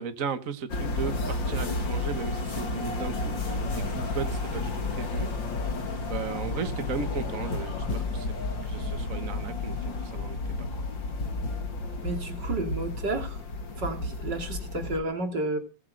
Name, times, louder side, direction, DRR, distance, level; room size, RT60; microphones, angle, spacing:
voice 1, 0.0-5.3 6.0-8.3 8.6-10.7, right 6 dB, 50° right, 9 dB, 1.6 m, -36 dB
sound 1, 0.7-15.0, left 2 dB, 85° left, 3.2 m, -31 dB
voice 2, 12.0-13.4 13.8-15.6, right 2 dB, 65° right, 5 dB, 3.4 m, -31 dB
20.5 x 8.3 x 6.5 m, 0.32 s
omnidirectional pair, 2.0 m